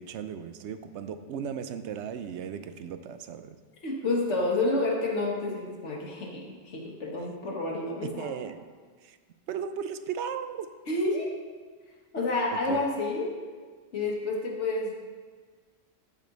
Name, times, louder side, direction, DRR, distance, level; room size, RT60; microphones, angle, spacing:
voice 1, 0.0-3.6 8.0-8.6 9.0-9.2 9.5-10.7 12.7-12.9, right 7 dB, 75° right, 10 dB, 0.9 m, -36 dB
voice 2, 3.8-8.5 10.9-11.4 12.1-13.3 13.9-14.9, left 2 dB, 90° left, -1 dB, 1.8 m, -29 dB
13.5 x 5.2 x 3.9 m, 1.5 s
omnidirectional pair, 1.2 m